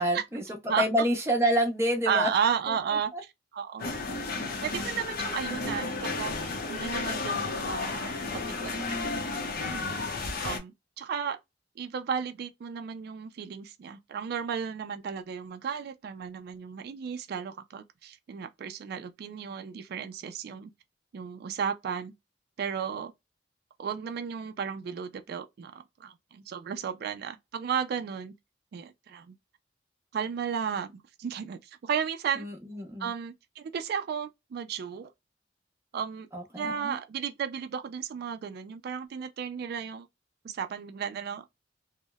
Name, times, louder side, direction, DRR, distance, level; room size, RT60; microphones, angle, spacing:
voice 1, 0.0-2.3 2.7-2.8 3.1-3.2 32.4-33.1 36.3-37.0, equal, 15° right, 0.7 m, -28 dB
voice 2, 2.1-3.9 4.6-6.3 6.7-9.1 9.6-10.2 10.4-11.4 11.8-20.7 21.1-22.1 22.6-23.1 23.8-28.3 28.7-29.3 30.1-32.5 33.0-35.1 35.9-36.3 36.5-40.1 40.4-41.4, right 7 dB, 60° right, 0.3 m, -34 dB
sound 1, 3.8-10.6, left 3 dB, 55° left, 0.6 m, -33 dB
2.8 x 2.0 x 2.2 m
head